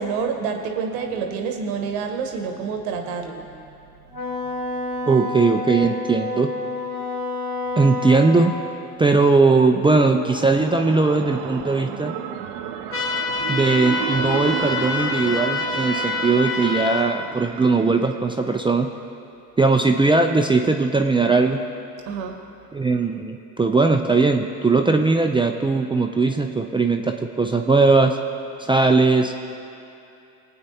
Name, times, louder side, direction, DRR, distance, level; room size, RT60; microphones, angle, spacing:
voice 1, 0.0-3.6 4.1-4.6 22.1-22.4, right 5 dB, 85° right, 4 dB, 1.3 m, -28 dB
Wind instrument woodwind instrument, 4.1-8.7, left 2 dB, 55° left, 1.8 m, -29 dB
voice 2, 5.1-6.5 7.8-8.5 9.0-12.1 13.5-18.9 19.6-21.6 22.7-28.2 28.6-29.3, right 3 dB, 10° right, 4 dB, 0.4 m, -19 dB
sound 1, 10.0-18.7, right 10 dB, 70° right, 0.8 m, -33 dB
sound 2, 12.9-17.1, left 3 dB, 30° left, 1.4 m, -26 dB
20.0 x 8.6 x 2.8 m, 2.7 s
supercardioid pair, 80°, 42 cm